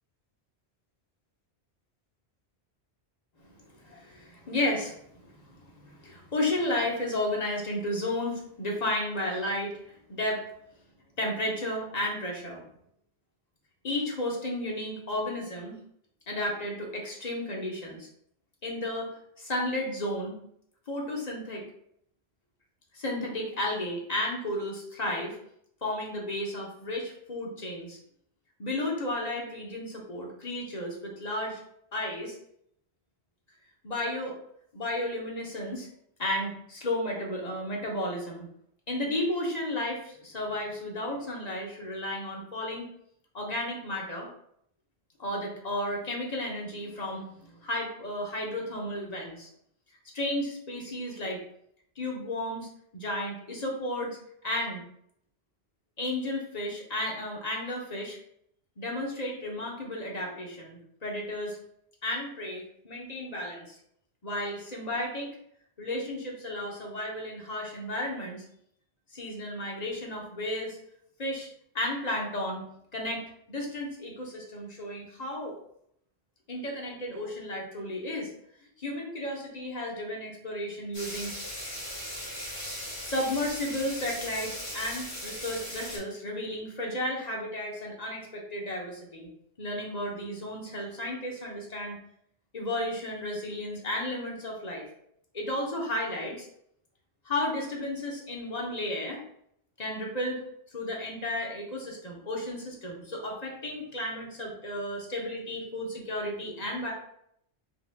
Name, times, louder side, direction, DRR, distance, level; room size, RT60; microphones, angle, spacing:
voice 1, 3.4-10.4 11.2-12.6 13.8-15.8 16.3-18.1 18.6-20.4 20.9-21.7 22.9-25.4 25.8-28.0 28.6-31.6 31.9-32.4 33.8-34.4 34.7-35.9 36.2-38.5 38.9-42.9 43.3-44.3 45.2-49.5 50.1-51.4 52.0-54.2 54.4-54.8 56.0-58.2 58.8-61.6 62.0-63.8 64.2-65.3 65.8-68.4 69.1-70.8 71.2-71.5 71.7-72.6 72.9-73.2 73.5-75.6 76.5-78.3 78.8-81.3 83.0-89.3 89.6-92.0 92.5-94.9 95.3-96.5 97.2-99.2 99.8-100.4 100.7-106.9, left 1 dB, 40° left, -1 dB, 1.0 m, -33 dB
sound 1, 80.9-86.0, equal, 75° left, 1.9 m, -38 dB
5.0 x 3.5 x 2.3 m, 0.70 s
omnidirectional pair, 1.1 m